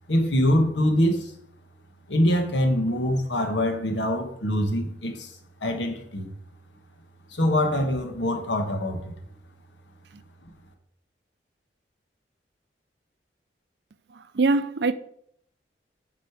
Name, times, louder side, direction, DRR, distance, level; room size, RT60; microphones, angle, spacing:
voice 1, 0.1-1.3 2.1-5.3 5.6-6.3 7.3-9.1, left 1 dB, 85° left, 1.3 m, -24 dB
voice 2, 14.1-14.9, right 3 dB, 70° right, 0.5 m, -24 dB
7.6 x 5.3 x 4.7 m
head